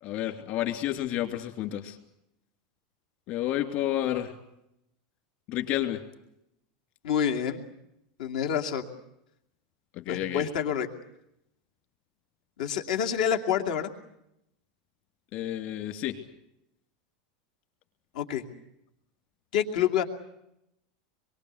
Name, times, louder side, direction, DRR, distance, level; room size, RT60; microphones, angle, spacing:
voice 1, 0.0-2.0 3.3-4.3 5.5-6.0 9.9-10.5 15.3-16.2, left 13 dB, 45° left, 6 dB, 2.9 m, -30 dB
voice 2, 7.0-7.6 8.2-8.9 10.1-10.9 12.6-13.9 18.1-18.5 19.5-20.0, left 8 dB, 75° left, 4 dB, 2.6 m, -27 dB
26.0 x 23.0 x 8.1 m, 0.82 s
supercardioid pair, 165°, 4 cm